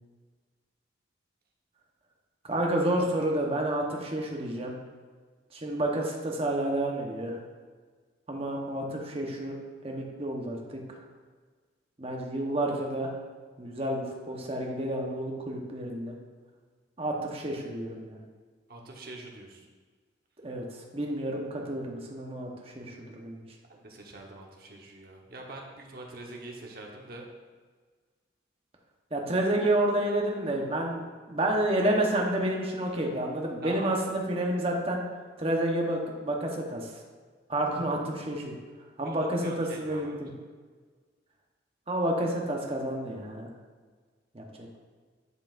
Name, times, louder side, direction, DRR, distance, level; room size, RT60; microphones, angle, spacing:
voice 1, 2.4-4.8 5.5-7.4 8.3-9.6 9.8-11.0 12.0-13.2 13.6-16.2 17.0-18.2 20.4-23.4 29.1-35.0 35.4-36.9 37.5-38.5 39.0-40.3 41.9-43.5 44.3-44.4, right 1 dB, 30° right, 0 dB, 0.9 m, -30 dB
voice 2, 18.7-19.7 23.7-27.3 33.6-34.0 39.0-40.1, right 2 dB, 55° right, 0 dB, 1.0 m, -44 dB
11.0 x 4.8 x 2.5 m, 1.5 s
head